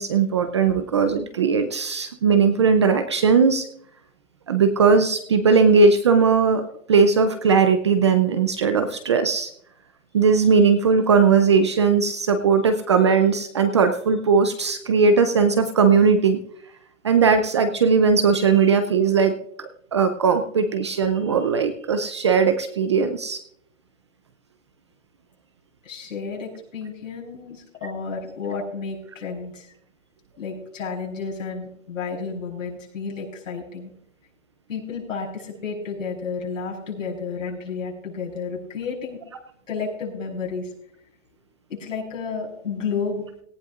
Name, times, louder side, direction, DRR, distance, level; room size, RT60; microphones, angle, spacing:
voice 1, 0.0-3.7 4.5-6.6 6.9-9.5 10.1-16.4 17.0-23.4, right 5 dB, 25° right, 8 dB, 0.4 m, -19 dB
voice 2, 25.8-29.7 30.4-33.9 34.7-39.2 39.7-40.7 41.7-43.3, left 5 dB, 80° left, -2 dB, 6.7 m, -31 dB
18.0 x 15.0 x 2.4 m, 0.69 s
hypercardioid pair, 155°, 38 cm